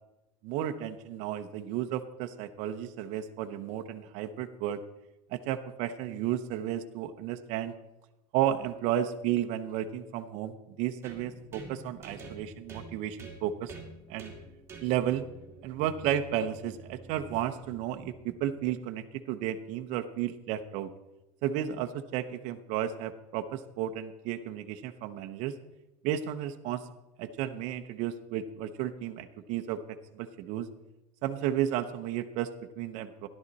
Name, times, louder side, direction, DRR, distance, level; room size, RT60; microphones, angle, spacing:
voice 1, 0.4-4.8 5.3-7.7 8.3-13.7 14.1-14.3 14.8-15.3 15.6-20.9 21.4-25.6 26.0-26.9 27.2-30.7 31.2-33.3, right 11 dB, 50° right, 7 dB, 0.8 m, -33 dB
sound 1, 11.0-18.8, right 3 dB, 15° right, 2.2 m, -48 dB
12.5 x 11.5 x 4.1 m, 0.98 s
cardioid pair, 165°, 16 cm